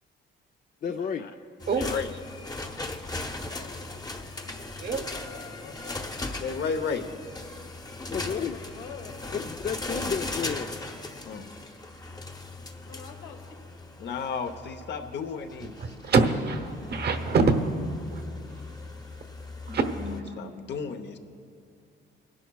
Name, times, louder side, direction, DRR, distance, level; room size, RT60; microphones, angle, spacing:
voice 1, 0.8-1.3 8.1-8.6 9.3-10.7, left 7 dB, 45° left, 6 dB, 0.4 m, -31 dB
sound 1, 1.6-20.2, left 2 dB, 20° left, 0.8 m, -38 dB
voice 2, 1.7-2.1 6.4-7.0 11.2-11.4 14.0-15.7 20.4-21.2, left 5 dB, 60° left, 7 dB, 0.9 m, -33 dB
voice 3, 3.3-4.1 5.0-6.5 8.2-9.4 12.8-13.4, left 6 dB, 85° left, 2 dB, 1.5 m, -47 dB
voice 4, 4.7-5.1 15.8-17.4 18.1-18.2 19.7-20.6, right 4 dB, 55° right, 7 dB, 1.0 m, -26 dB
24.0 x 11.0 x 2.3 m, 2.5 s
cardioid pair, 90°, 20 cm